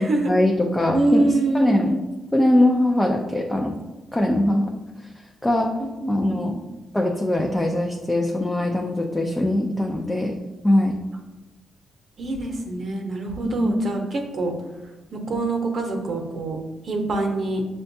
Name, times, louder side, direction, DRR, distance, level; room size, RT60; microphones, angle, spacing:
voice 1, 0.0-1.2 1.5-1.9 2.3-3.7 4.1-4.7 5.4-5.7 6.1-6.5 6.9-10.3 10.6-10.9 13.4-13.7, left 1 dB, 10° left, 1 dB, 0.4 m, -21 dB
voice 2, 0.9-1.9 5.8-6.5 12.2-14.5 15.1-16.6 16.8-17.6, right 2 dB, 50° right, 2 dB, 0.8 m, -25 dB
6.6 x 2.2 x 2.6 m, 1.1 s
cardioid pair, 100°, 0 cm